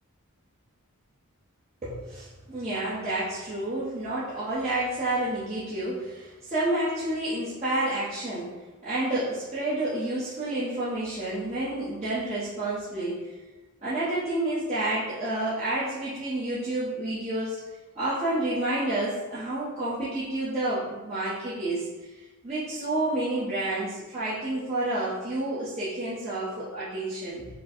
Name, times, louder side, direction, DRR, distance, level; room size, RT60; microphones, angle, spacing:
voice 1, 1.8-8.5 8.8-13.3 13.8-17.6 17.9-22.1 22.4-27.5, right 1 dB, 30° right, -12 dB, 1.1 m, -29 dB
5.2 x 2.2 x 4.4 m, 1.2 s
head